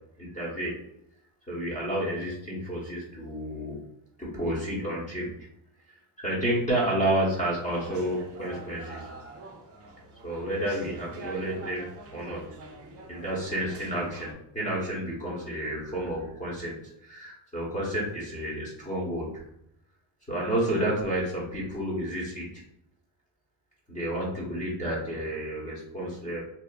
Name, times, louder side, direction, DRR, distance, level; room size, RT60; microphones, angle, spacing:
voice 1, 0.2-0.8 1.5-3.8 4.2-5.3 6.2-9.1 10.2-11.9 12.1-12.4 13.1-16.7 17.0-19.4 20.3-22.5 23.9-26.4, right 1 dB, 15° left, -6 dB, 0.9 m, -30 dB
sound 1, 7.3-14.3, right 2 dB, 30° right, 0.4 m, -44 dB
2.7 x 2.4 x 2.3 m, 0.77 s
cardioid pair, 125°, 49 cm